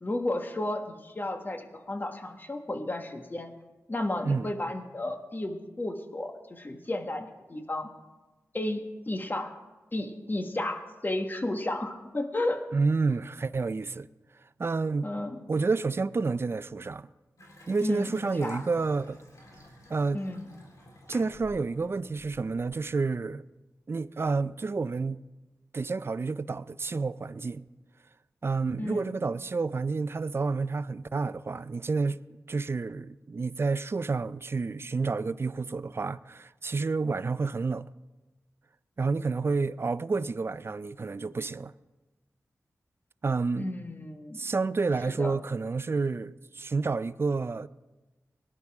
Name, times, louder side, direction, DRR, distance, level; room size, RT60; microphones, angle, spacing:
voice 1, 0.0-3.5 3.9-7.9 8.5-9.6 9.9-12.6 15.0-15.4 17.8-18.6 20.1-20.4 28.8-29.1 43.6-44.4 45.2-45.3, left 1 dB, 35° left, 1.5 m, -33 dB
voice 2, 12.7-14.1 14.6-15.1 15.5-17.1 17.7-19.2 19.9-20.2 21.1-23.4 23.9-25.2 25.7-27.7 28.4-32.2 32.5-37.9 39.0-41.7 43.2-43.7 44.3-47.7, right 4 dB, 40° right, 0.4 m, -29 dB
Water tap faucet / Sink (filling or washing) / Bathtub (filling or washing), 17.4-22.8, left 1 dB, 65° left, 3.3 m, -50 dB
19.0 x 11.0 x 3.6 m
cardioid pair, 55°, 6 cm